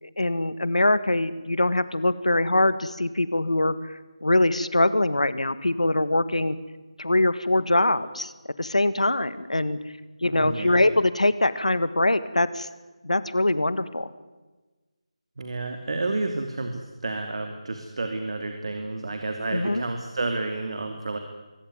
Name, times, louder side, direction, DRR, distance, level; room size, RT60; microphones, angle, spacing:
voice 1, 0.0-6.6 7.0-8.3 8.6-9.8 10.2-12.7 13.0-14.1 19.5-19.8, left 2 dB, 90° left, 14 dB, 1.8 m, -23 dB
voice 2, 10.3-10.9 15.4-21.2, right 2 dB, 55° right, 6 dB, 2.7 m, -30 dB
24.0 x 16.5 x 9.8 m, 1.2 s
figure-of-eight pair, 165°, 3 cm